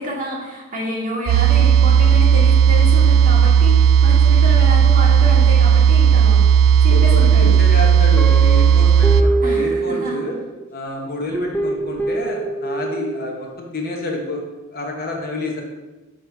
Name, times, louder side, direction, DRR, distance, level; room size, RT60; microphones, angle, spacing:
voice 1, 0.0-6.4 6.8-7.6 9.4-10.2, left 1 dB, 35° right, -4 dB, 1.5 m, -28 dB
sound 1, 1.3-9.2, right 8 dB, 65° right, 0.3 m, -13 dB
voice 2, 6.9-10.4 10.7-14.4 14.7-15.6, left 1 dB, 40° left, 1 dB, 0.9 m, -28 dB
Guitar, 8.2-10.6 11.3-13.3, right 3 dB, 10° left, 0.4 m, -24 dB
6.1 x 4.2 x 4.6 m, 1.1 s
head